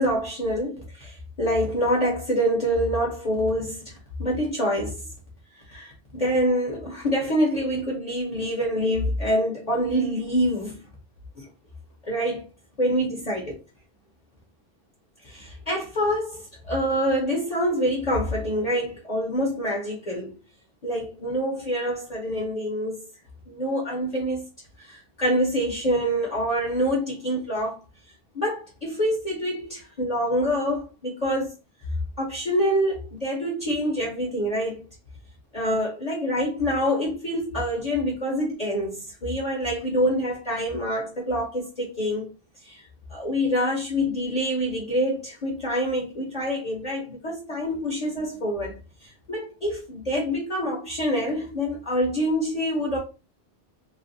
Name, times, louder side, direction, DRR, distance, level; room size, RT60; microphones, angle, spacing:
voice 1, 0.0-5.1 5.7-10.8 11.4-11.5 12.0-12.4 12.8-13.6 15.2-20.3 20.8-23.1 23.5-24.5 24.8-27.8 28.3-31.5 32.2-34.8 35.5-42.3 42.6-42.8 43.1-48.7 49.0-53.0, equal, 40° left, 0.9 m, -26 dB
3.2 x 2.3 x 2.6 m
omnidirectional pair, 1.1 m